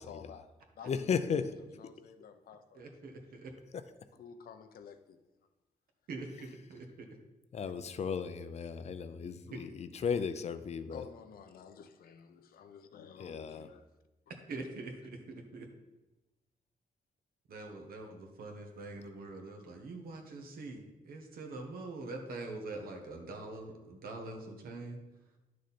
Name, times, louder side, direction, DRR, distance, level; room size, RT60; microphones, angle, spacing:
voice 1, 0.0-3.1 4.2-5.2 6.4-6.5 9.5-9.6 10.9-13.9, left 7 dB, 80° left, 8 dB, 0.8 m, -52 dB
voice 2, 0.9-1.4 7.5-11.0 13.2-13.7, left 6 dB, 45° left, 11 dB, 0.6 m, -35 dB
voice 3, 2.7-3.5 6.1-7.1 9.5-9.6 14.5-15.7 17.5-25.0, right 2 dB, 80° right, 3 dB, 1.6 m, -44 dB
11.0 x 6.5 x 4.3 m, 1.0 s
wide cardioid pair, 145°, 15 cm